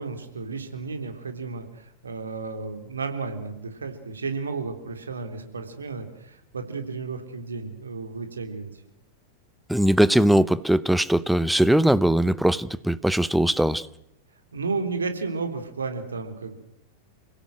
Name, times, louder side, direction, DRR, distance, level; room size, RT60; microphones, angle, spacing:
voice 1, 0.0-8.7 14.5-16.6, right 4 dB, 75° right, 7 dB, 3.5 m, -33 dB
voice 2, 9.7-13.9, right 1 dB, ahead, 17 dB, 0.9 m, -20 dB
28.5 x 17.0 x 7.8 m, 0.81 s
figure-of-eight pair, 90°, 0 cm